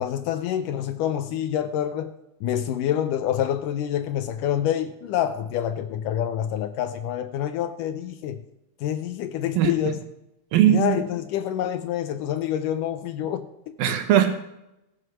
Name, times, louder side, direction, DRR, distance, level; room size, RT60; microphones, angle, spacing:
voice 1, 0.0-2.1 2.4-8.4 8.8-10.0 10.7-14.0, left 10 dB, 75° left, 10 dB, 2.1 m, -27 dB
voice 2, 10.5-11.0 13.8-14.4, right 11 dB, 80° right, 6 dB, 2.9 m, -19 dB
16.0 x 7.8 x 6.2 m, 0.88 s
omnidirectional pair, 4.2 m